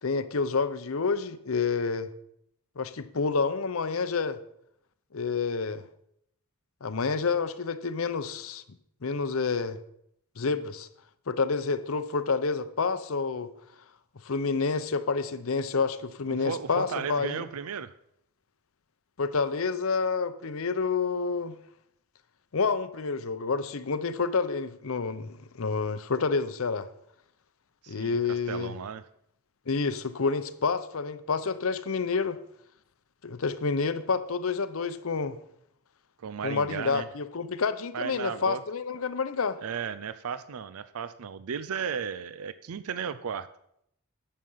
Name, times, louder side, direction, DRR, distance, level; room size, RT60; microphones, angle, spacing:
voice 1, 0.0-2.1 2.8-4.4 5.1-5.8 6.8-8.6 9.0-9.8 10.4-10.9 11.3-13.5 14.2-17.4 19.2-21.6 22.5-26.9 27.9-28.8 29.7-32.4 33.2-35.4 36.4-39.6, left 4 dB, 70° left, 13 dB, 0.7 m, -29 dB
voice 2, 16.3-17.9 27.8-29.0 36.2-37.1 37.9-38.6 39.6-43.5, right 7 dB, 85° right, 14 dB, 0.5 m, -35 dB
11.5 x 7.5 x 5.5 m, 0.74 s
head